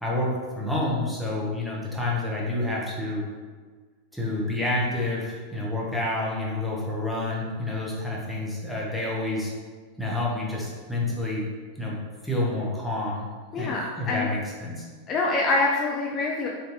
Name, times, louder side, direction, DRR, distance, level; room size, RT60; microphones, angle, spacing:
voice 1, 0.0-3.2 4.1-9.5 10.0-11.5 11.8-12.0 12.2-13.3 13.6-14.9, left 2 dB, ahead, -5 dB, 0.8 m, -28 dB
voice 2, 13.5-14.3 15.1-16.5, left 3 dB, 30° left, -2 dB, 0.3 m, -25 dB
3.6 x 2.7 x 2.6 m, 1.5 s
figure-of-eight pair, 90°, 0 cm